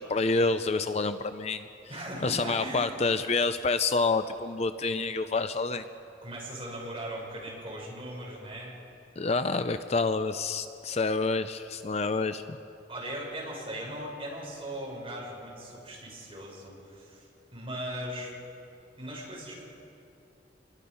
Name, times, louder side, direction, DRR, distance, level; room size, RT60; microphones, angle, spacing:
voice 1, 0.0-1.6 2.2-5.9 9.2-12.6, left 3 dB, 35° left, 10 dB, 0.6 m, -28 dB
voice 2, 1.9-2.9 6.2-8.8 12.9-17.2 17.5-18.3 19.0-19.6, right 1 dB, 30° right, -4 dB, 6.7 m, -38 dB
28.0 x 22.0 x 5.6 m, 2.8 s
head